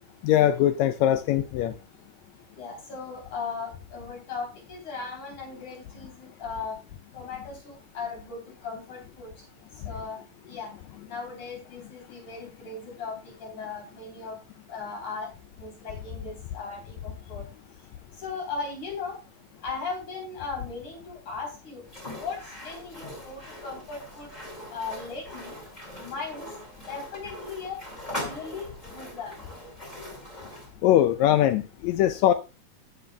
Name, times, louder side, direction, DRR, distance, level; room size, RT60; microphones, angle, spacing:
voice 1, 0.2-1.7 30.8-32.3, left 12 dB, 85° left, 1.6 m, -21 dB
voice 2, 2.6-6.8 7.1-9.3 9.8-10.7 11.1-14.4 14.7-15.3 15.6-17.5 18.2-19.2 19.6-21.9 22.1-24.3 24.7-25.6 26.0-26.5 26.8-27.8 28.1-29.5, left 4 dB, 60° left, 5.2 m, -37 dB
sound 1, 21.9-30.7, left 1 dB, 15° left, 2.4 m, -41 dB
14.5 x 7.6 x 2.4 m
omnidirectional pair, 3.8 m